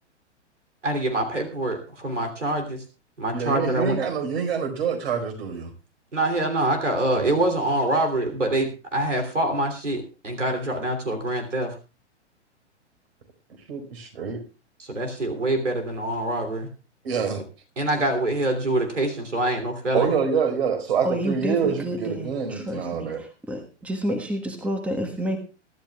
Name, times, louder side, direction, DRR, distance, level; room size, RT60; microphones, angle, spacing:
voice 1, 0.8-2.8 3.2-4.0 6.1-11.8 14.8-16.7 17.8-20.1, right 1 dB, 85° right, 6 dB, 3.2 m, -25 dB
voice 2, 3.3-5.7 7.1-7.3 13.7-14.4 17.0-17.4 19.9-23.2, right 6 dB, 60° right, 6 dB, 4.9 m, -26 dB
voice 3, 21.0-25.4, equal, 5° right, 6 dB, 1.4 m, -29 dB
23.5 x 12.5 x 2.4 m, 0.32 s
figure-of-eight pair, 110°, 36 cm